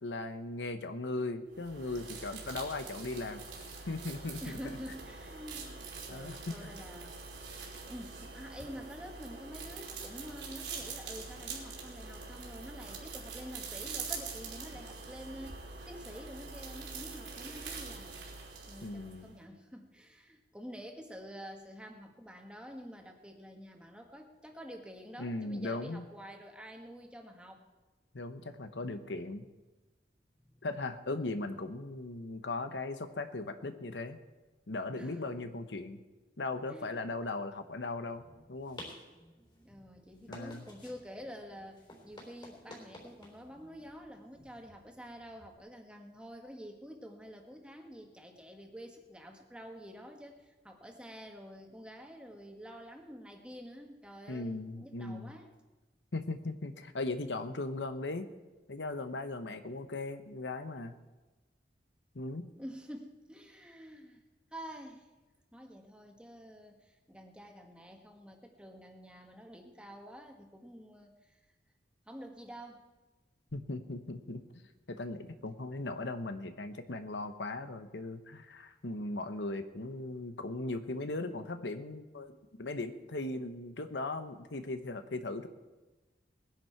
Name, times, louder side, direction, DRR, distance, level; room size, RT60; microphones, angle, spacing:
voice 1, 0.0-3.4 3.9-4.6 6.1-6.8 18.8-19.3 25.2-26.0 28.1-29.5 30.6-34.2 34.7-36.0 36.4-38.2 38.5-38.8 40.3-40.7 54.3-55.3 56.1-58.3 58.7-60.9 62.1-62.5 73.5-74.4 74.9-85.5, left 2 dB, 85° left, 9 dB, 1.0 m, -38 dB
sound 1, 1.5-19.4, right 4 dB, 85° right, 3.2 m, -44 dB
voice 2, 4.4-7.3 7.8-15.6 15.9-18.2 18.7-27.6 30.5-30.6 35.0-35.4 36.7-37.0 39.6-55.5 62.6-64.2 64.5-65.1 65.5-71.4 72.1-72.8, equal, 5° right, 3 dB, 1.5 m, -48 dB
sound 2, 38.0-45.6, left 1 dB, 25° left, 3.6 m, -53 dB
20.0 x 10.5 x 4.6 m, 1.2 s
head